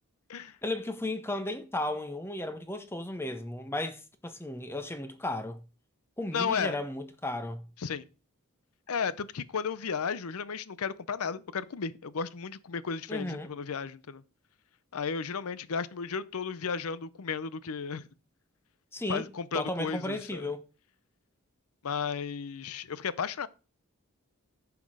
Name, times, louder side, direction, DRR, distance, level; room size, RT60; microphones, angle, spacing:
voice 1, 0.6-5.6 6.2-7.6 13.1-13.5 18.9-19.3 19.5-20.6, left 1 dB, 10° left, 0.7 m, -34 dB
voice 2, 6.3-6.8 7.8-8.1 8.9-14.2 14.9-18.0 19.1-20.5 21.8-23.5, left 6 dB, 80° left, 0.6 m, -34 dB
10.5 x 5.9 x 4.9 m
head